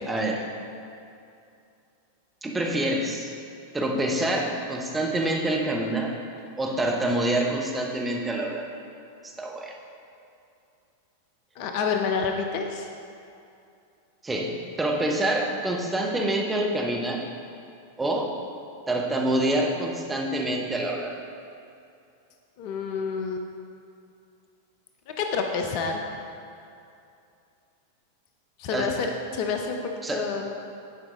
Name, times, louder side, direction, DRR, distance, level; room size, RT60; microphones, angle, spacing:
voice 1, 0.1-0.4 2.4-3.3 3.7-6.2 6.6-8.7 9.2-9.8 14.2-17.2 18.0-18.3 18.9-21.2 28.7-28.9 30.0-30.2, right 1 dB, 10° right, -1 dB, 1.0 m, -26 dB
voice 2, 11.5-12.9 22.6-23.4 25.1-26.0 28.6-30.5, left 5 dB, 45° left, 3 dB, 0.7 m, -28 dB
10.5 x 5.2 x 3.8 m, 2.6 s
figure-of-eight pair, 90°, 0 cm